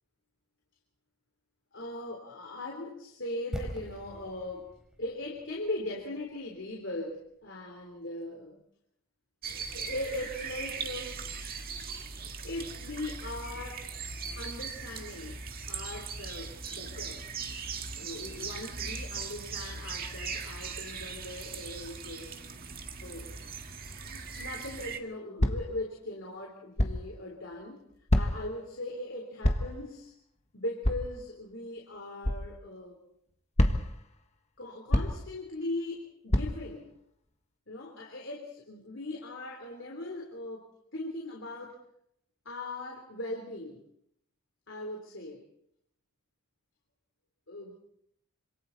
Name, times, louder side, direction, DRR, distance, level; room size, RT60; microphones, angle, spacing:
voice 1, 1.7-4.7 5.0-8.6 9.5-11.2 12.4-14.0 14.3-15.4 15.7-17.2 18.0-22.3 23.0-23.3 24.0-27.9 28.1-30.1 30.5-33.0 34.6-36.9 37.7-41.8 42.5-43.9 44.7-45.4 47.5-47.8, left 1 dB, 55° left, 0 dB, 3.6 m, -39 dB
sound 1, 3.5-7.5 7.7-7.8, equal, 5° right, 4.4 m, -43 dB
sound 2, 9.4-25.0, right 5 dB, 40° right, 1.8 m, -39 dB
sound 3, 25.4-25.8 26.8-27.1 28.1-28.5 29.4-29.8 30.8-31.2 32.2-32.4 33.6-34.0 34.9-35.3 36.3-36.7, left 1 dB, 30° left, 1.5 m, -26 dB
27.5 x 26.5 x 4.1 m, 0.72 s
head